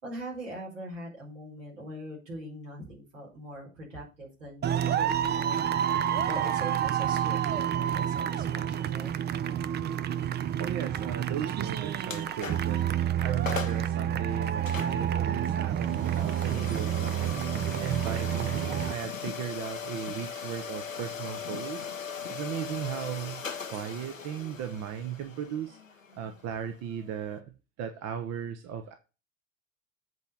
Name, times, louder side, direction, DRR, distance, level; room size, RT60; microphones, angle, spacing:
voice 1, 0.0-5.9 6.2-9.1, right 1 dB, 75° right, -3 dB, 4.8 m, -42 dB
sound 1, 4.6-18.9, right 10 dB, 25° right, 0.6 m, -29 dB
voice 2, 10.6-12.9 13.2-21.9 22.3-23.4 23.7-25.8 26.2-28.9, right 9 dB, 40° right, 8 dB, 1.1 m, -36 dB
sound 2, 12.0-12.8 13.2-13.3 13.5-13.9 14.7-27.4, left 6 dB, 85° left, 0.8 m, -39 dB
8.2 x 4.7 x 6.8 m, 0.31 s
figure-of-eight pair, 65°, 38 cm